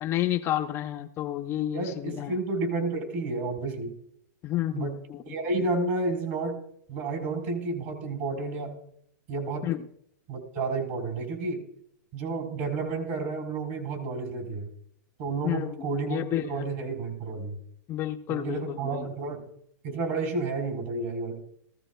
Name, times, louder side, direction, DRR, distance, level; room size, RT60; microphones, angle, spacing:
voice 1, 0.0-2.3 4.4-5.2 9.6-9.8 15.4-16.6 17.9-19.0, left 13 dB, 25° left, 6 dB, 0.5 m, -30 dB
voice 2, 1.7-3.9 4.7-4.9 5.2-6.5 6.9-8.7 9.3-9.6 10.3-11.6 12.1-14.7 15.2-17.6 18.3-19.4 19.8-21.4, right 3 dB, 45° right, 2 dB, 3.8 m, -31 dB
18.0 x 15.5 x 2.2 m, 0.71 s
hypercardioid pair, 150°, 10 cm